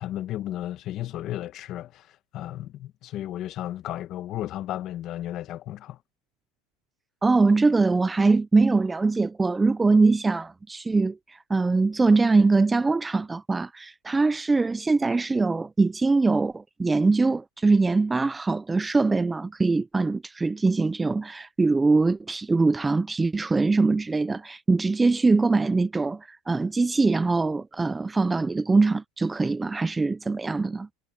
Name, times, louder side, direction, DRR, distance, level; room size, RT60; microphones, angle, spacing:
voice 1, 0.0-6.0, left 13 dB, 35° left, 1.7 m, -34 dB
voice 2, 7.2-30.9, right 3 dB, 10° right, 0.4 m, -22 dB
supercardioid pair, 145°, 0 cm